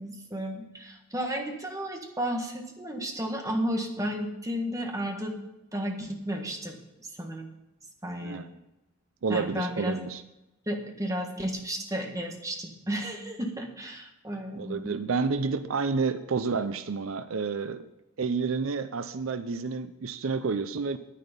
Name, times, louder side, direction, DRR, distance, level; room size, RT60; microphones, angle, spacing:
voice 1, 0.0-5.3 5.7-6.8 7.0-7.5 8.0-8.4 9.3-10.0 10.7-14.9, equal, 15° right, 3 dB, 1.6 m, -33 dB
voice 2, 9.2-10.2 14.5-17.9 18.2-21.0, right 4 dB, 75° right, 12 dB, 0.6 m, -30 dB
10.0 x 10.0 x 5.3 m, 0.94 s
head